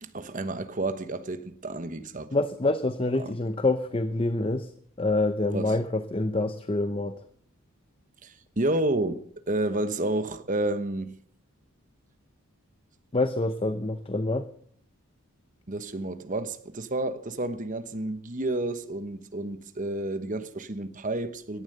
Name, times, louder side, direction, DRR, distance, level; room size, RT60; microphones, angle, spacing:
voice 1, 0.0-2.3 3.2-3.3 5.5-5.8 8.2-11.2 15.7-21.6, right 2 dB, 35° right, 1.1 m, -30 dB
voice 2, 2.3-4.7 5.0-7.2 13.1-14.5, left 2 dB, 25° left, 0.6 m, -26 dB
17.0 x 11.0 x 6.7 m
head